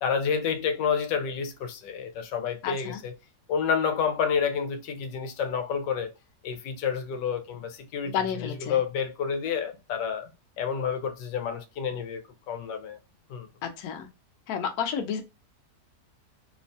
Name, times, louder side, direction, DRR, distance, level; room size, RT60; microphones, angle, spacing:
voice 1, 0.0-3.1 3.5-6.1 6.4-10.3 10.6-13.0 13.3-13.5, left 6 dB, 90° left, 1.3 m, -29 dB
voice 2, 2.6-3.0 8.0-8.8 13.6-14.1 14.5-15.2, left 7 dB, 70° left, 1.0 m, -31 dB
3.1 x 2.1 x 2.6 m
omnidirectional pair, 1.8 m